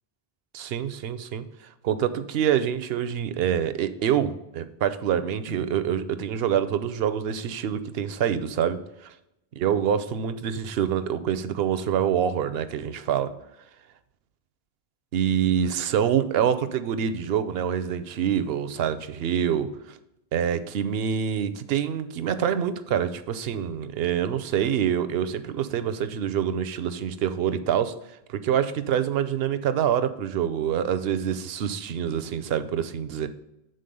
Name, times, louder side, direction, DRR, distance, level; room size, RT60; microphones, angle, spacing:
voice 1, 0.5-1.5 1.8-9.1 9.6-13.3 15.1-20.0 20.3-27.9 28.3-33.3, right 9 dB, 75° right, 13 dB, 0.8 m, -26 dB
7.8 x 3.9 x 5.3 m, 0.86 s
omnidirectional pair, 1.1 m